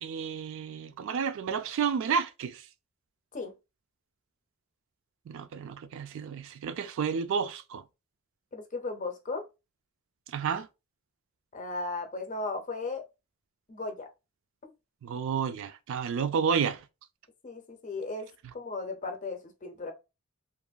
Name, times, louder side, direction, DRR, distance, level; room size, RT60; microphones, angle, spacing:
voice 1, 0.0-2.6 5.3-7.8 10.3-10.7 15.0-16.8, right 6 dB, 65° right, 0.3 m, -31 dB
voice 2, 8.5-9.4 11.5-13.1 13.7-14.1 17.4-19.9, left 3 dB, 35° left, 0.5 m, -36 dB
2.9 x 2.5 x 2.2 m
head